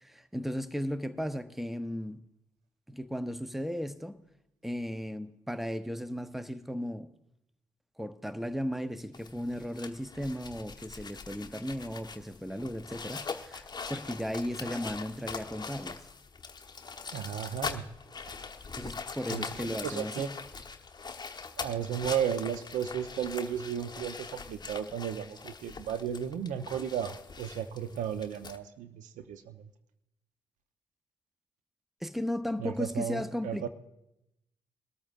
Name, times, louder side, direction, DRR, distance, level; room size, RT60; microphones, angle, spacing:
voice 1, 0.0-2.2 2.9-4.2 4.6-7.1 8.0-16.1 18.8-20.3 32.0-33.7, equal, ahead, 0.8 m, -36 dB
sound 1, 9.1-28.6, left 5 dB, 30° left, 1.0 m, -42 dB
voice 2, 17.1-17.8 19.3-20.3 21.6-29.6 32.6-33.7, right 8 dB, 70° right, 0.7 m, -34 dB
21.0 x 13.5 x 2.5 m
hypercardioid pair, 45°, 13 cm